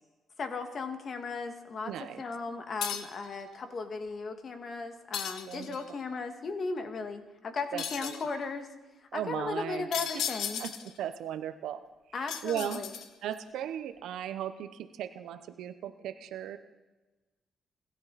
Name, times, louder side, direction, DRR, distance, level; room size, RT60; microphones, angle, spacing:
voice 1, 0.4-1.9 2.2-8.7 9.1-10.6 12.1-12.9, left 4 dB, 45° left, 6 dB, 2.1 m, -36 dB
voice 2, 1.8-2.2 5.5-5.8 7.7-8.2 9.1-9.9 10.1-10.2 10.6-11.8 12.4-12.8 13.2-16.6, right 10 dB, 80° right, 11 dB, 0.9 m, -37 dB
sound 1, 2.8-3.3 5.1-5.9 7.8-8.3 9.9-11.0 12.3-13.3, left 8 dB, 80° left, 1.2 m, -36 dB
27.0 x 12.5 x 4.2 m, 1.1 s
cardioid pair, 90°, 0 cm